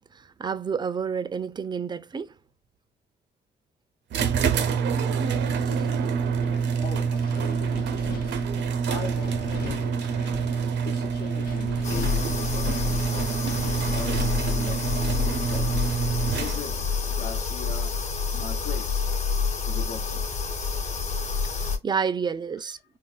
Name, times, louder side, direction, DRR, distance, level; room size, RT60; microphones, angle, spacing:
voice 1, 0.0-2.3 5.5-5.7 21.4-22.8, right 6 dB, 25° right, 0.3 m, -30 dB
sound 1, 4.1-16.9, right 6 dB, 90° right, 0.6 m, -27 dB
voice 2, 5.4-19.1 19.7-20.5, left 7 dB, 90° left, 0.9 m, -41 dB
Wind, 5.6-17.1, left 7 dB, 55° left, 0.4 m, -42 dB
sound 2, 11.8-21.8, left 5 dB, 40° left, 1.1 m, -28 dB
3.9 x 2.2 x 2.3 m
cardioid pair, 145°, 18 cm